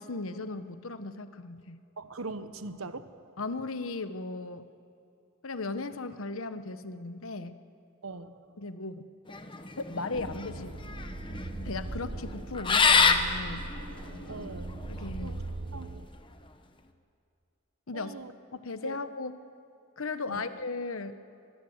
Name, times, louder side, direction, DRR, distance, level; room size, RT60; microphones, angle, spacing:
voice 1, 0.0-1.8 3.4-4.6 5.4-7.6 8.6-9.0 9.8-10.8 11.6-13.7 14.9-15.4 17.9-18.2 18.5-19.3 20.0-21.1, left 3 dB, 75° left, 11 dB, 1.1 m, -36 dB
voice 2, 2.0-3.3 8.0-8.4 14.3-15.3 15.7-15.9 17.9-18.3 18.8-19.0 20.3-20.4, right 3 dB, 75° right, 11 dB, 1.1 m, -41 dB
sound 1, 9.3-15.1, left 5 dB, 20° left, 1.0 m, -27 dB
sound 2, 10.1-16.1, right 2 dB, 50° right, 0.9 m, -40 dB
25.0 x 21.0 x 8.0 m, 2.6 s
head